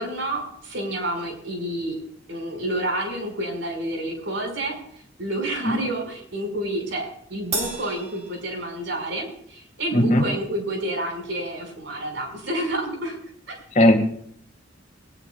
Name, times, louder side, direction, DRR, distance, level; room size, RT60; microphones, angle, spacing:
voice 1, 0.0-2.0 2.3-4.8 5.2-13.2 13.5-13.6, right 1 dB, 65° right, 2 dB, 5.7 m, -29 dB
Crash cymbal, 7.5-9.2, right 3 dB, 35° right, 3.7 m, -33 dB
voice 2, 9.9-10.2 13.8-14.1, left 1 dB, 40° left, 3 dB, 2.1 m, -17 dB
22.0 x 19.5 x 2.5 m, 0.64 s
head